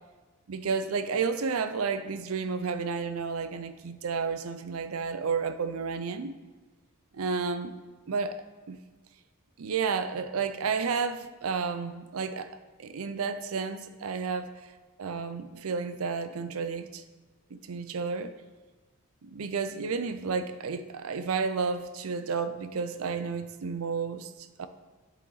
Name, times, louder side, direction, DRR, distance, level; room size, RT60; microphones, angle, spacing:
voice 1, 0.5-6.4 7.1-7.7 8.1-8.8 9.6-12.5 12.8-14.7 15.0-17.0 17.5-18.4 19.2-24.7, right 5 dB, 75° right, 11 dB, 0.5 m, -31 dB
7.6 x 6.6 x 3.9 m, 1.3 s
head